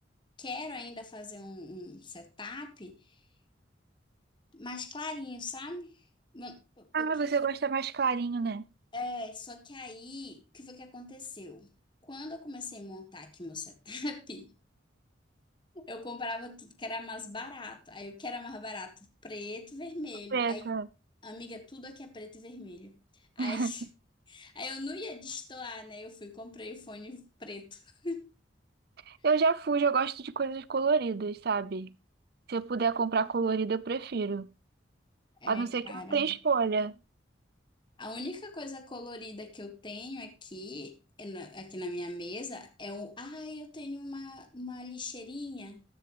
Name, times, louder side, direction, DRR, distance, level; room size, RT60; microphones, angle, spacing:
voice 1, 0.4-3.2 4.5-6.0 6.3-7.1 8.9-11.7 12.0-14.5 15.7-20.8 21.2-23.8 24.3-28.3 35.4-36.3 38.0-45.8, left 2 dB, 25° left, 1.5 m, -41 dB
voice 2, 6.9-8.6 20.3-20.9 23.4-23.7 29.1-31.9 32.5-34.5 35.5-37.0, right 5 dB, 55° right, 0.6 m, -29 dB
14.5 x 10.0 x 3.0 m
head